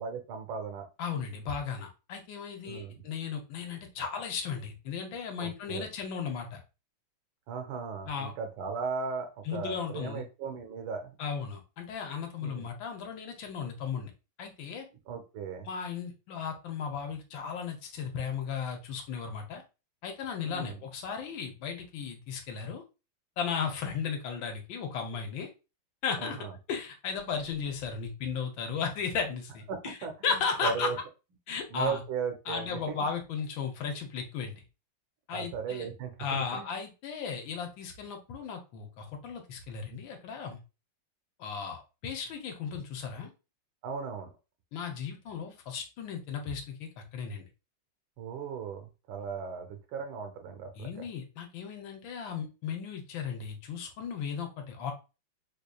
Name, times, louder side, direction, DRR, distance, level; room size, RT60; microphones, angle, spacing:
voice 1, 0.0-0.9 2.6-3.0 5.4-5.9 7.5-11.2 12.4-12.7 15.1-15.7 20.4-20.8 26.2-26.5 29.7-31.0 31.7-33.1 35.3-36.7 43.8-44.3 48.2-51.1, right 5 dB, 75° right, 5 dB, 1.5 m, -37 dB
voice 2, 1.0-6.6 8.1-8.3 9.5-10.2 11.2-14.1 14.4-14.9 15.7-19.6 20.0-22.8 23.4-25.5 26.0-26.4 26.7-30.0 30.2-30.9 31.5-32.0 32.5-34.6 35.3-35.9 36.2-40.6 41.4-43.3 44.7-47.5 50.8-54.9, left 6 dB, 70° left, 4 dB, 1.4 m, -35 dB
4.8 x 2.6 x 2.2 m, 0.29 s
omnidirectional pair, 2.3 m